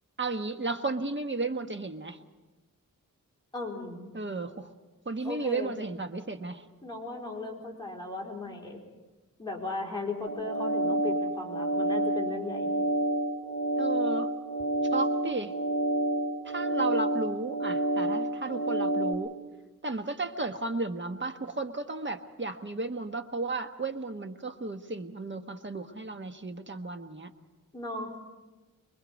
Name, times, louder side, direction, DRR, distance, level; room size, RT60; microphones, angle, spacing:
voice 1, 0.2-2.2 4.1-4.7 5.0-6.6 13.8-14.3 14.9-15.6 16.4-19.4 19.8-27.3, right 3 dB, 35° right, 7 dB, 1.3 m, -34 dB
voice 2, 3.5-4.1 5.2-5.7 6.8-8.8 9.4-12.7 27.7-28.1, left 3 dB, 15° left, -1 dB, 4.4 m, -36 dB
sound 1, 10.3-19.1, right 1 dB, 85° right, 3.0 m, -29 dB
25.0 x 22.5 x 5.3 m, 1.2 s
wide cardioid pair, 85°, 33 cm